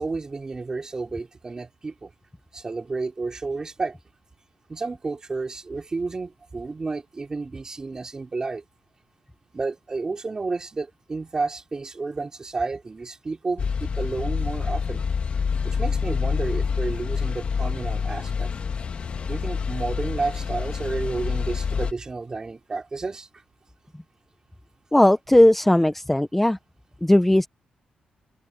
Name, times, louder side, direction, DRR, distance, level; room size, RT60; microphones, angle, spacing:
voice 1, 0.0-2.1 2.5-4.0 4.7-8.6 9.5-15.0 15.6-18.5 19.3-23.3, right 3 dB, 25° right, 4.3 m, -31 dB
sound 1, 13.6-21.9, left 6 dB, 50° left, 1.6 m, -27 dB
voice 2, 24.9-26.6 27.0-27.5, left 1 dB, 5° left, 0.7 m, -17 dB
wide cardioid pair, 140°, 3 cm